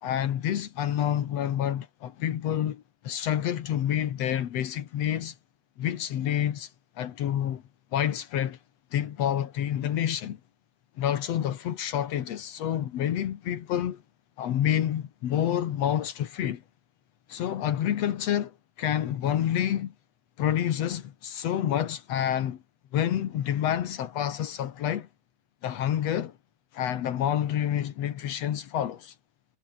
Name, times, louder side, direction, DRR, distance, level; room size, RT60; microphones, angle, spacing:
voice 1, 0.0-5.3 5.8-6.7 7.0-7.6 7.9-8.6 8.9-10.4 11.0-14.0 14.4-16.6 17.3-19.9 20.4-22.6 22.9-25.1 25.6-26.3 26.7-29.1, left 10 dB, 80° left, 1.4 m, -28 dB
omnidirectional pair, 5.1 m